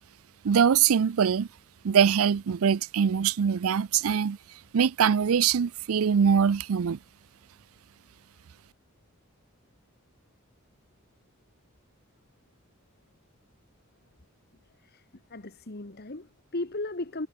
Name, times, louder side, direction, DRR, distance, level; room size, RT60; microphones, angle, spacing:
voice 1, 0.4-1.5 1.8-4.4 4.7-7.0, right 7 dB, 75° right, 0.4 m, -23 dB
voice 2, 14.8-17.3, left 2 dB, 45° left, 1.4 m, -36 dB
head